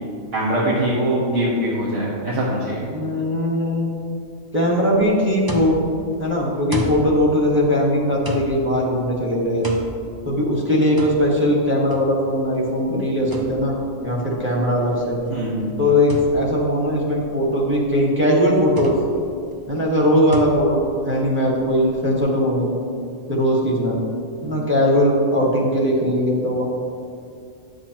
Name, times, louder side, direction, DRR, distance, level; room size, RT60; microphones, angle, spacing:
voice 1, 0.3-2.8 15.3-15.7, right 1 dB, 60° right, -7 dB, 1.5 m, -22 dB
voice 2, 2.9-3.9 4.5-5.8 6.2-9.7 10.2-13.8 14.0-15.2 15.8-18.9 19.7-22.7 23.3-24.0 24.4-26.6, equal, 10° right, -3 dB, 1.3 m, -19 dB
sound 1, 5.4-22.2, right 1 dB, 30° right, 0.4 m, -36 dB
9.9 x 7.6 x 2.9 m, 2.4 s
omnidirectional pair, 1.4 m